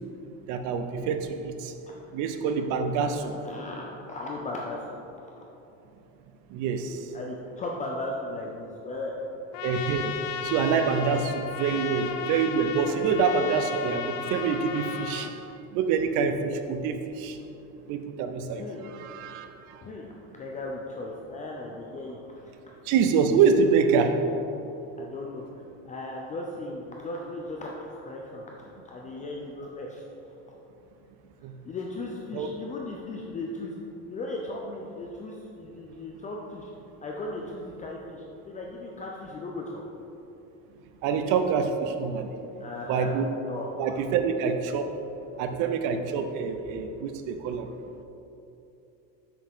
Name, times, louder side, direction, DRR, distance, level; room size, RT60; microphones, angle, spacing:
voice 1, 0.5-1.7 2.1-3.2 6.5-7.0 9.6-15.4 15.7-17.4 17.9-19.8 22.9-24.3 31.4-31.5 32.3-32.5 41.0-42.3 42.9-43.3 43.8-44.9 45.4-47.7, right 5 dB, 65° right, 7 dB, 0.7 m, -26 dB
voice 2, 2.9-5.0 7.1-9.1 18.6-18.8 19.8-20.1 20.3-22.5 25.0-25.4 25.8-30.3 31.4-33.7 34.1-36.7 37.0-39.8 42.6-43.1 43.5-43.7, left 2 dB, 25° left, -1 dB, 0.5 m, -37 dB
Trumpet, 9.5-15.3, left 8 dB, 85° left, 0.6 m, -35 dB
6.8 x 6.1 x 3.6 m, 2.9 s
cardioid pair, 155°, 32 cm